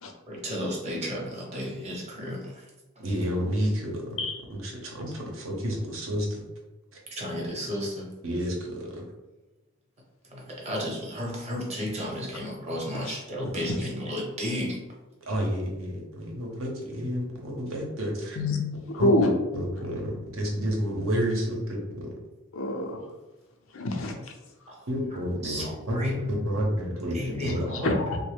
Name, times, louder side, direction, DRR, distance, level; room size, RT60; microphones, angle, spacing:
voice 1, 0.3-2.6 7.1-8.1 10.3-14.8 25.4-26.4 27.1-27.9, equal, 35° right, -2 dB, 0.8 m, -33 dB
voice 2, 3.0-4.1 4.5-6.4 8.2-9.1 15.3-18.4 19.0-19.1 19.5-22.1 24.9-27.6, equal, 75° right, -1 dB, 0.8 m, -30 dB
voice 3, 18.9-19.3 22.5-23.0 23.7-24.1 27.4-28.2, left 1 dB, 75° left, 3 dB, 0.5 m, -26 dB
3.1 x 2.0 x 3.3 m, 1.1 s
head